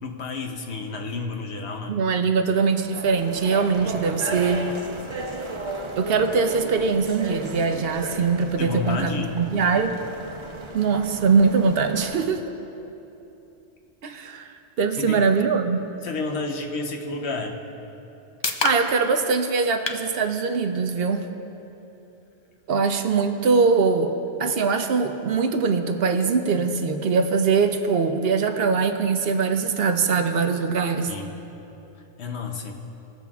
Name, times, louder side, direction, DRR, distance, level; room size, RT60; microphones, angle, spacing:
voice 1, 0.0-2.0 3.8-4.0 8.6-9.4 15.0-15.2 16.0-17.6 31.1-31.3 32.2-32.7, left 4 dB, 70° left, 3 dB, 1.0 m, -30 dB
voice 2, 1.9-4.6 6.0-9.9 10.7-12.4 14.0-14.5 14.8-15.9 18.6-21.2 22.7-24.1 24.4-31.1, right 5 dB, 65° right, 7 dB, 0.8 m, -22 dB
sound 1, 2.7-12.2, right 2 dB, 30° right, 0.7 m, -35 dB
sound 2, 17.7-31.6, left 3 dB, 45° left, 0.3 m, -39 dB
19.0 x 7.1 x 2.3 m, 2.9 s
omnidirectional pair, 1.1 m